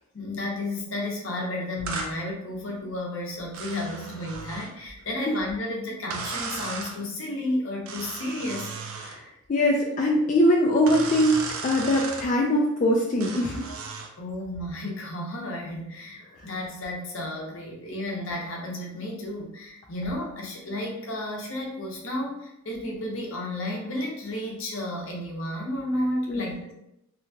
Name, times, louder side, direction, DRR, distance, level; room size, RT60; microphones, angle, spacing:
voice 1, 0.1-8.7 14.2-26.7, left 1 dB, 65° left, -1 dB, 0.7 m, -32 dB
sound 1, 1.9-2.1 3.5-4.8 6.1-7.0 7.9-9.2 10.9-12.3 13.2-14.1, right 4 dB, 90° right, 0.4 m, -35 dB
voice 2, 9.0-13.7 26.3-26.7, left 1 dB, 40° left, -3 dB, 0.3 m, -23 dB
2.8 x 2.2 x 2.6 m, 0.81 s
head